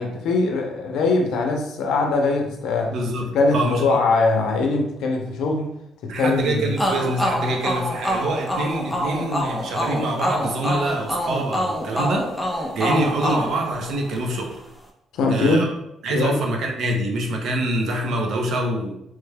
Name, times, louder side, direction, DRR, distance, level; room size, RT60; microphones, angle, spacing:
voice 1, 0.0-2.9 3.3-5.7 6.0-6.7 15.1-15.7 16.1-16.4, left 3 dB, 80° left, 2 dB, 0.6 m, -21 dB
voice 2, 2.9-4.0 6.1-14.6 15.3-15.7 16.0-19.0, right 1 dB, 65° right, 1 dB, 0.7 m, -25 dB
sound 1, 6.8-14.4, equal, 5° left, 0.5 m, -26 dB
3.2 x 2.2 x 3.3 m, 0.82 s
cardioid pair, 140°, 0 cm